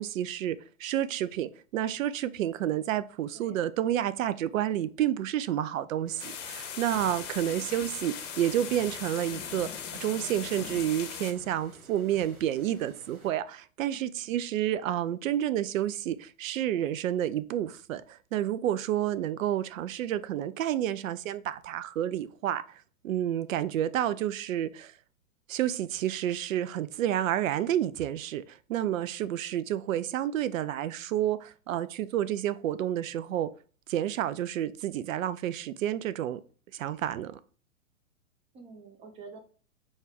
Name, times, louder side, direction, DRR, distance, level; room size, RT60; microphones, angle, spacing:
voice 1, 0.0-22.6 23.0-24.9 25.5-33.5 33.9-36.4 36.7-37.4, right 11 dB, 70° right, 0.5 m, -30 dB
sound 1, 6.0-13.3, right 3 dB, 85° right, 1.8 m, -53 dB
sound 2, 6.2-11.3, left 8 dB, 55° left, 0.9 m, -39 dB
voice 2, 7.4-7.8 13.9-14.0 14.5-14.7 38.5-39.4, right 4 dB, 15° right, 0.4 m, -48 dB
4.4 x 2.3 x 3.4 m
hypercardioid pair, 115°, 43 cm